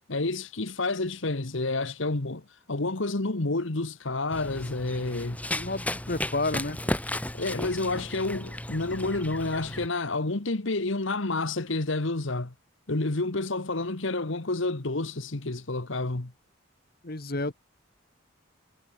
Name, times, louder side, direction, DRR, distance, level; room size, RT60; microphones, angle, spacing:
voice 1, 0.1-5.4 7.3-12.5 12.9-16.3, left 2 dB, 70° left, 1.4 m, -29 dB
Run, 4.3-9.9, left 1 dB, 5° left, 2.1 m, -34 dB
voice 2, 5.5-7.0 17.0-17.5, left 2 dB, 45° left, 1.4 m, -31 dB
head